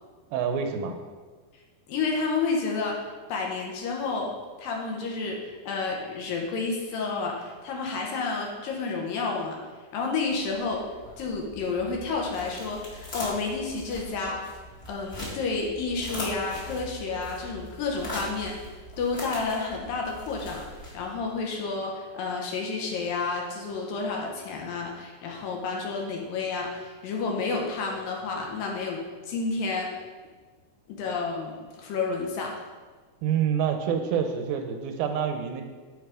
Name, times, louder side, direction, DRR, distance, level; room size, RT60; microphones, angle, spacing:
voice 1, 0.3-0.9 33.2-35.6, right 7 dB, 80° right, 6 dB, 2.5 m, -27 dB
voice 2, 1.9-3.0 3.3-4.3 4.6-9.6 9.9-10.8 11.2-14.5 14.9-20.7 20.9-30.0 30.9-32.6, left 4 dB, 75° left, 0 dB, 2.5 m, -30 dB
sound 1, 10.3-21.3, left 1 dB, 30° left, 1.2 m, -41 dB
10.0 x 3.8 x 4.9 m, 1.4 s
omnidirectional pair, 4.3 m